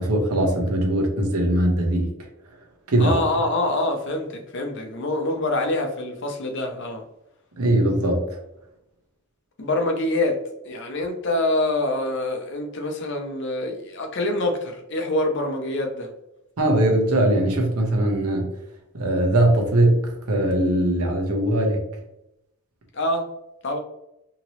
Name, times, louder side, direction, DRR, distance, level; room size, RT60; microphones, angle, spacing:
voice 1, 0.0-2.1 2.9-3.2 7.6-8.4 16.6-18.5 18.9-21.8, right 1 dB, 85° right, 2 dB, 0.8 m, -20 dB
voice 2, 3.0-7.0 9.6-16.1 22.9-23.3 23.6-23.8, left 2 dB, 55° left, 4 dB, 0.6 m, -25 dB
2.9 x 2.8 x 2.9 m, 0.85 s
head